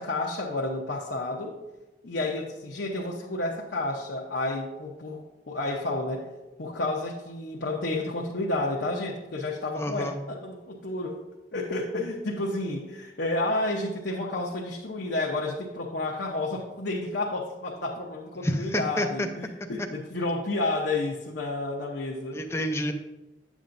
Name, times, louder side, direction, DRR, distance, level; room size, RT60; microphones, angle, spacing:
voice 1, 0.0-1.5 2.0-6.3 6.6-11.2 11.5-22.4, left 2 dB, 75° left, -3 dB, 0.8 m, -31 dB
voice 2, 9.8-10.2 18.4-19.3 22.3-22.9, left 1 dB, 15° left, 5 dB, 0.5 m, -29 dB
9.1 x 7.2 x 2.6 m, 1.1 s
head